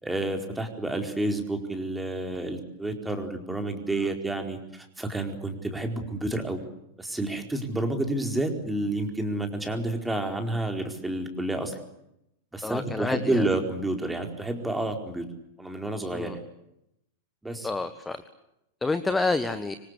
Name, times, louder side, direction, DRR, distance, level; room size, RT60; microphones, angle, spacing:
voice 1, 0.0-6.6 7.0-11.8 12.5-15.3 15.6-16.4 17.4-17.7, right 2 dB, 5° right, 4 dB, 4.5 m, -30 dB
voice 2, 12.6-13.5 16.1-16.4 17.6-18.2 18.8-19.7, left 3 dB, 10° left, 11 dB, 1.5 m, -29 dB
26.0 x 25.0 x 8.3 m, 0.83 s
figure-of-eight pair, 90°, 0 cm